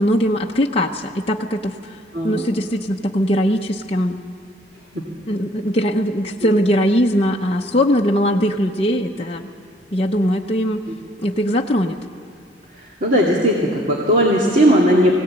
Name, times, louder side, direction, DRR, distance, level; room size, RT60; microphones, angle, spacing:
voice 1, 0.0-2.0 2.2-4.2 5.3-9.5 9.9-10.8 11.2-12.0, equal, 35° left, 0 dB, 0.8 m, -20 dB
voice 2, 13.0-15.2, equal, 45° right, -3 dB, 2.4 m, -16 dB
22.5 x 17.5 x 8.8 m, 2.5 s
head